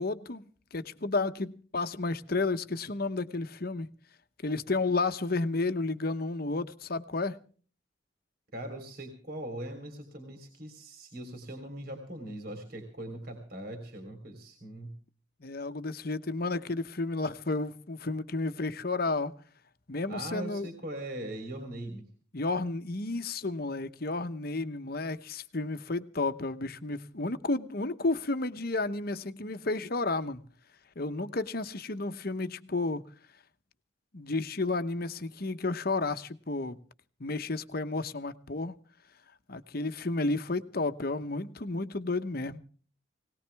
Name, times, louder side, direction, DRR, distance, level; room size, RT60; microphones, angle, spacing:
voice 1, 0.0-3.9 4.4-7.4 15.4-19.3 19.9-20.7 22.3-30.4 31.0-33.0 34.1-36.8 37.2-38.7 39.5-42.6, left 3 dB, 50° left, 1.0 m, -32 dB
voice 2, 8.5-14.9 20.1-22.0, right 1 dB, 50° right, 3.5 m, -40 dB
20.5 x 18.5 x 3.5 m
head